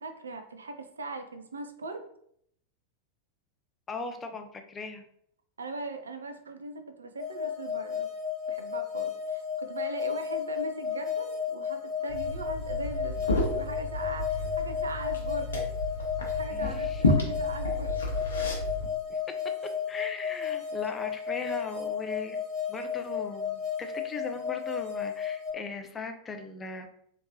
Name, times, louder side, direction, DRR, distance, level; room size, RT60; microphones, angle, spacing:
voice 1, 0.0-2.0 5.6-8.1 8.5-15.5 16.2-18.0 22.2-22.3, right 2 dB, 75° right, 7 dB, 0.4 m, -40 dB
voice 2, 3.9-5.0 16.5-17.0 19.1-19.2 19.9-22.4 22.7-26.9, left 3 dB, 20° left, 6 dB, 0.4 m, -39 dB
sound 1, 7.2-25.5, left 8 dB, 20° right, 1.1 m, -33 dB
Liquid, 12.1-18.9, left 2 dB, 70° left, 0.8 m, -31 dB
3.5 x 2.9 x 2.8 m, 0.69 s
figure-of-eight pair, 90°, 0 cm